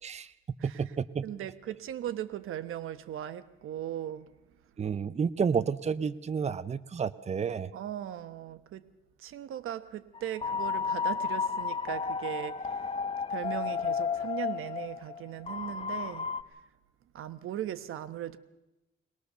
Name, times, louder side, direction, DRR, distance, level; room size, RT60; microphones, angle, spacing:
voice 1, 0.0-0.3 0.6-1.3 4.8-7.7, right 6 dB, 30° right, 0.7 m, -30 dB
voice 2, 1.2-4.3 7.7-8.8 9.2-12.9 13.3-16.3 17.1-18.4, right 11 dB, 85° right, 1.2 m, -38 dB
sound 1, 10.1-16.4, left 5 dB, 30° left, 0.9 m, -32 dB
22.0 x 20.0 x 6.8 m
cardioid pair, 110°, 21 cm